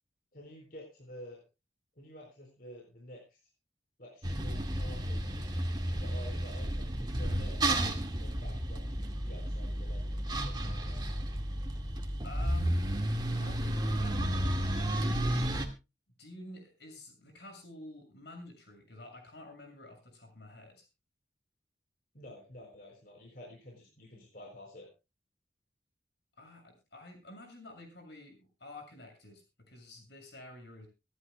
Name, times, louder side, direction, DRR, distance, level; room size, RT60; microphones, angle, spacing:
voice 1, 0.3-1.4 2.0-3.4 4.0-5.3 6.0-8.9 9.2-11.0 22.1-24.9, equal, 55° left, -1 dB, 4.7 m, -50 dB
sound 1, 4.2-15.7, right 1 dB, 25° right, 1.8 m, -32 dB
voice 2, 12.2-12.9 13.3-15.3 16.2-20.9 26.4-30.9, left 1 dB, 75° left, 3 dB, 6.7 m, -50 dB
25.5 x 11.0 x 2.2 m, 0.28 s
head